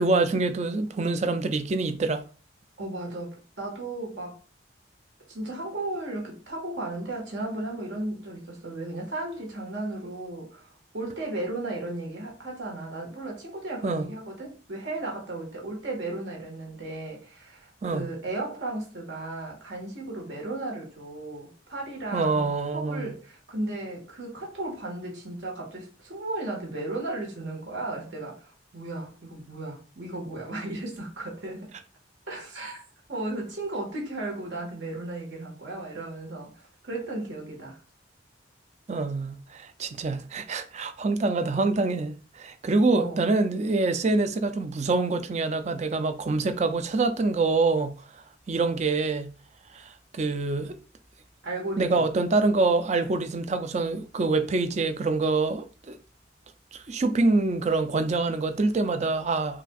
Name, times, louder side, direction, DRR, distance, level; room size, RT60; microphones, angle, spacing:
voice 1, 0.0-2.2 13.8-14.1 17.8-18.1 22.1-23.1 38.9-49.3 49.7-50.8 51.8-56.0 56.7-59.6, right 3 dB, 35° right, 0.4 m, -26 dB
voice 2, 2.8-4.4 5.3-22.5 22.7-31.7 32.3-32.8 33.1-37.8 42.9-43.2 51.4-52.1, right 2 dB, 70° right, 1.6 m, -35 dB
5.8 x 2.5 x 2.4 m
head